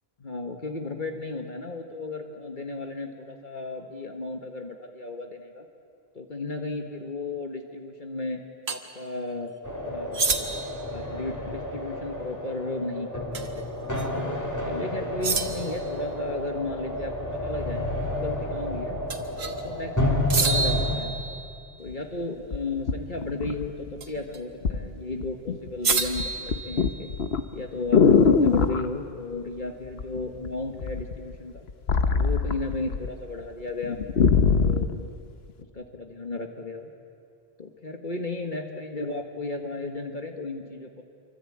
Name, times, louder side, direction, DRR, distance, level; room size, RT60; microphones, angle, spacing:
voice 1, 0.2-5.7 6.1-8.4 8.7-9.5 9.9-10.5 10.9-13.6 14.1-19.0 19.4-21.2 21.8-27.1 27.5-31.7 32.1-35.1 35.7-36.9 37.6-41.0, left 2 dB, 50° left, 4 dB, 1.8 m, -35 dB
sound 1, 8.7-8.8 10.1-10.8 13.3-13.6 14.0-14.1 15.2-15.8 19.1-19.6 20.3-21.7 24.0-24.4 25.8-27.2, right 4 dB, 85° right, 1.8 m, -28 dB
sound 2, 9.6-21.0, left 1 dB, 15° left, 3.1 m, -30 dB
sound 3, 21.9-22.0 22.5-24.0 24.6-24.9 25.2-25.7 26.0-28.9 30.0-30.5 30.8-33.1 33.4-33.5 33.8-35.0 35.6-35.7, left 5 dB, 75° left, 1.3 m, -22 dB
27.0 x 24.5 x 8.8 m, 2.4 s
omnidirectional pair, 1.0 m